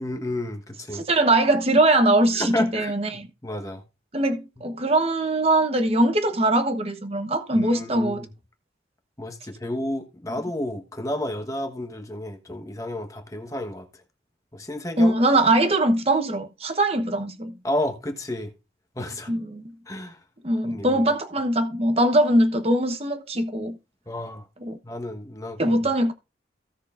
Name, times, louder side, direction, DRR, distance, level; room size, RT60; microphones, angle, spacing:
voice 1, 0.0-1.0 2.3-3.8 7.5-8.3 9.2-13.9 14.5-15.1 17.6-18.5 18.9-19.3 19.9-20.2 20.6-21.0 24.1-24.4 24.8-25.8, left 1 dB, 15° left, 1.3 m, -31 dB
voice 2, 0.9-3.3 4.1-8.2 15.0-17.5 19.3-19.6 20.4-23.8 24.6-24.8 25.6-26.1, right 1 dB, 30° right, 1.1 m, -21 dB
16.5 x 6.4 x 2.5 m
head